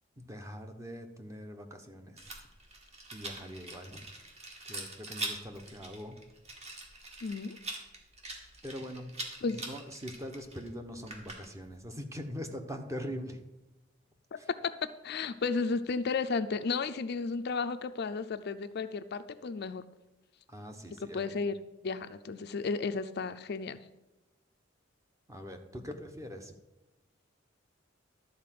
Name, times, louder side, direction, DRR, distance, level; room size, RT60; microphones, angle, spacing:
voice 1, 0.2-2.2 3.1-4.0 4.6-6.2 8.6-9.2 9.5-13.4 14.4-14.5 20.5-21.3 25.3-26.5, equal, 15° right, 5 dB, 1.0 m, -42 dB
Rattle, 2.2-11.8, right 2 dB, 35° right, 1.8 m, -43 dB
voice 2, 7.2-7.6 9.4-9.6 14.3-19.8 21.1-21.6 21.8-23.8, left 4 dB, 55° left, 10 dB, 0.5 m, -33 dB
12.0 x 4.4 x 7.5 m, 1.0 s
head